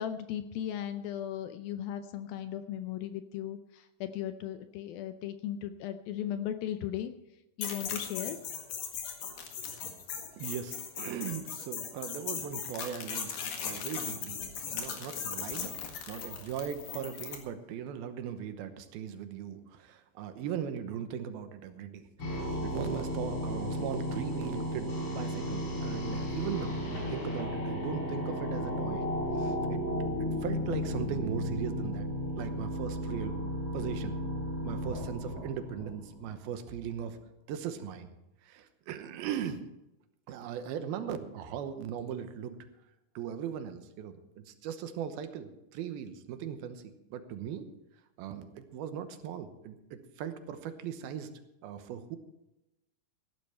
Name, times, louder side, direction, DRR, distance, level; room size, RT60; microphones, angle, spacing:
voice 1, 0.0-7.1 7.6-8.4, left 10 dB, 80° left, 9 dB, 2.4 m, -37 dB
sound 1, 7.6-17.4, left 7 dB, 60° left, 3.3 m, -38 dB
voice 2, 10.4-13.3 13.6-15.7 16.1-29.0 29.3-29.8 30.2-32.1 32.4-33.4 33.7-34.2 34.6-37.2 37.5-38.1 38.4-39.6 40.3-42.6 43.2-47.7 48.2-51.3 51.6-52.2, right 8 dB, 80° right, 9 dB, 2.8 m, -39 dB
sound 2, 22.2-36.3, equal, 35° left, 4.9 m, -34 dB
15.5 x 12.0 x 4.4 m, 0.91 s
omnidirectional pair, 4.5 m